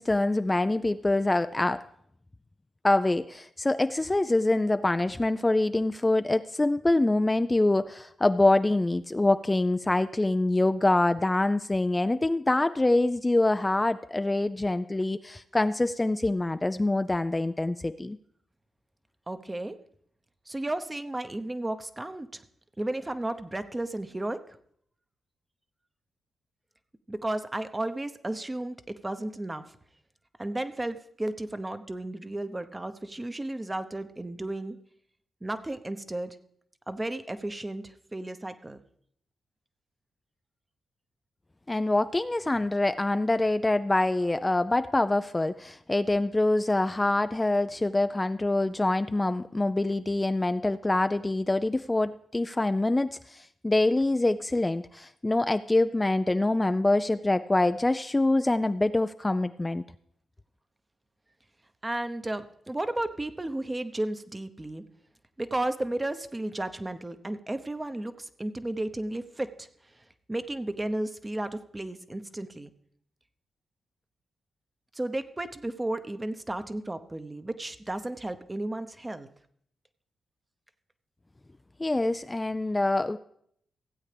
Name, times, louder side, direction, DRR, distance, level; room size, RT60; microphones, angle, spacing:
voice 1, 0.0-1.8 2.8-18.2 41.7-59.8 81.8-83.2, left 2 dB, 20° left, 11 dB, 0.4 m, -25 dB
voice 2, 19.3-19.8 20.5-22.4 22.8-24.4 27.1-29.6 30.4-34.8 35.4-36.4 36.9-38.8 61.8-64.8 65.4-69.7 70.3-72.7 74.9-79.3, right 1 dB, 20° right, 10 dB, 0.9 m, -33 dB
16.0 x 8.3 x 3.4 m, 0.68 s
supercardioid pair, 45°, 0 cm